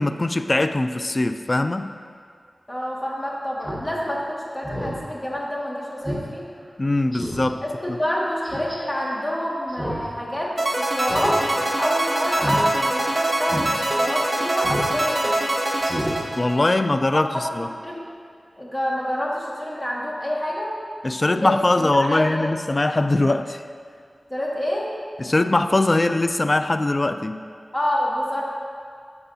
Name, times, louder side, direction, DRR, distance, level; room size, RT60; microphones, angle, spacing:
voice 1, 0.0-1.9 6.8-7.6 7.9-8.0 16.4-17.7 21.0-23.6 25.2-27.4, left 2 dB, 40° left, 10 dB, 0.3 m, -21 dB
voice 2, 2.7-6.5 7.6-13.7 14.0-15.3 17.8-18.0 18.6-20.7 21.3-21.5 21.9-22.5 24.3-24.9 27.7-28.4, equal, 20° left, -4 dB, 1.7 m, -27 dB
Speech synthesizer, 3.6-3.8 4.2-4.3 4.6-5.0 5.4-5.5 6.0-6.2 6.6-6.7 7.1-7.5 8.4-8.8 9.7-10.1 10.3-10.4 11.0-11.4 11.6-11.9 12.3-12.6 13.0-13.1 13.5-13.7 14.6-14.9 15.2-15.4 15.8-16.1 16.5-16.6, equal, 20° right, 1.5 m, -30 dB
sound 1, 10.6-16.9, right 1 dB, 35° right, 1.0 m, -24 dB
14.0 x 4.8 x 2.7 m, 2.2 s
cardioid pair, 45°, 0 cm